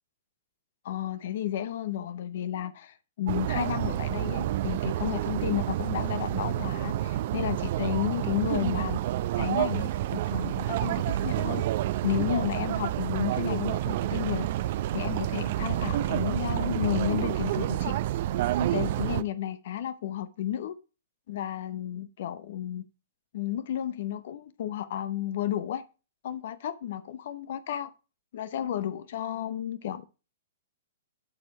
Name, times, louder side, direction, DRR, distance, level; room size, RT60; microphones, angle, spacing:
voice 1, 0.8-9.0 9.3-11.6 12.0-14.5 14.9-18.0 18.7-20.7 21.3-22.8 23.3-25.8 26.2-27.9 28.3-30.1, left 11 dB, 55° left, 0.8 m, -32 dB
sound 1, 3.3-19.2, right 13 dB, 50° right, 0.6 m, -29 dB
12.0 x 4.4 x 4.7 m
figure-of-eight pair, 115°, 0 cm